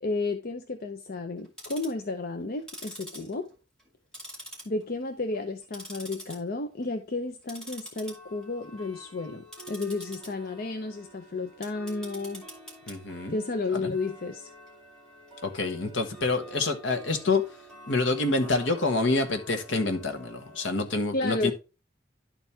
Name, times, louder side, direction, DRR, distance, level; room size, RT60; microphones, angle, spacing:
voice 1, 0.0-3.5 4.7-12.5 13.3-14.5 21.1-21.5, left 3 dB, 55° left, 0.7 m, -32 dB
Tick-tock, 1.4-2.0 2.6-3.9 4.1-5.0 5.3-6.4 6.7-7.0 7.4-20.8, right 1 dB, 5° left, 2.3 m, -46 dB
voice 2, 12.9-13.4 13.7-13.9 15.4-17.4 17.9-21.5, left 3 dB, 70° left, 1.3 m, -27 dB
11.5 x 4.4 x 3.4 m
head